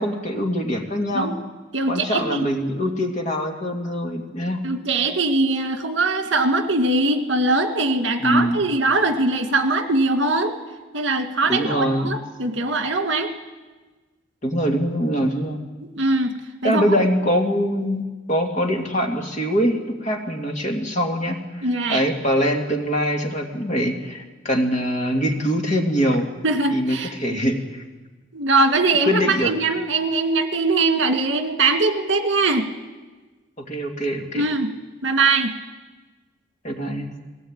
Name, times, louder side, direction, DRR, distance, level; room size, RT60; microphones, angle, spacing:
voice 1, 0.0-1.4 1.9-4.6 8.2-8.6 11.5-12.1 14.4-15.6 16.6-26.3 26.7-27.8 29.0-29.5 33.6-34.5 36.6-37.1, equal, 35° left, 2 dB, 2.3 m, -23 dB
voice 2, 1.7-2.4 4.6-10.6 10.9-13.3 16.0-16.3 16.6-16.8 21.6-22.0 26.4-27.4 28.3-32.7 34.3-34.7 35.0-35.5, right 3 dB, 70° right, 6 dB, 2.0 m, -21 dB
20.5 x 18.0 x 8.9 m, 1.3 s
head